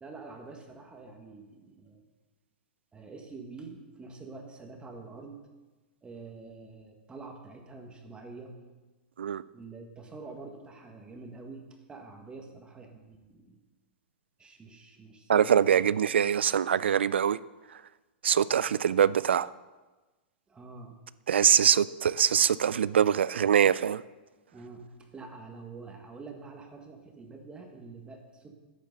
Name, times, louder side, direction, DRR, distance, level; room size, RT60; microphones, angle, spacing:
voice 1, 0.0-2.0 2.9-5.5 6.0-8.5 9.5-13.6 14.4-15.8 20.5-21.0 24.5-28.5, right 3 dB, 15° right, 3 dB, 1.8 m, -46 dB
voice 2, 15.3-17.4 17.7-17.8 18.2-19.5 21.3-24.0, right 8 dB, 80° right, 18 dB, 0.4 m, -23 dB
10.5 x 9.2 x 6.8 m, 1.2 s
hypercardioid pair, 110°, 6 cm